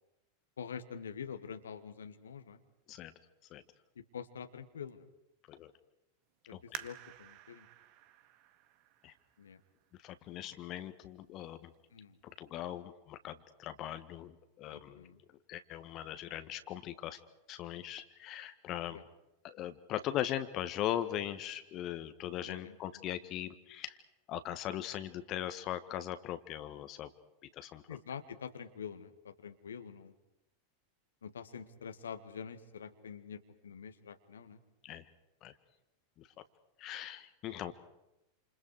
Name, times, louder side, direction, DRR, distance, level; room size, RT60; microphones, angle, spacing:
voice 1, 0.6-2.6 4.0-5.0 6.5-7.7 9.4-9.6 11.9-12.2 14.7-15.2 18.9-19.0 22.4-23.0 27.9-30.1 31.2-34.6, left 7 dB, 70° left, 9 dB, 1.7 m, -46 dB
voice 2, 6.5-6.8 9.0-9.1 10.0-11.7 12.4-15.1 15.5-17.2 17.5-19.0 19.4-24.0 24.3-27.1 27.5-28.0 34.8-35.1 35.4-35.5 36.2-36.3 36.8-37.7, left 12 dB, 35° left, 10 dB, 1.6 m, -40 dB
sound 1, 6.7-10.1 10.7-10.8 11.4-11.8 12.2-12.3, right 13 dB, 45° right, 1.7 m, -50 dB
29.0 x 28.5 x 4.9 m, 0.90 s
figure-of-eight pair, 90°, 0 cm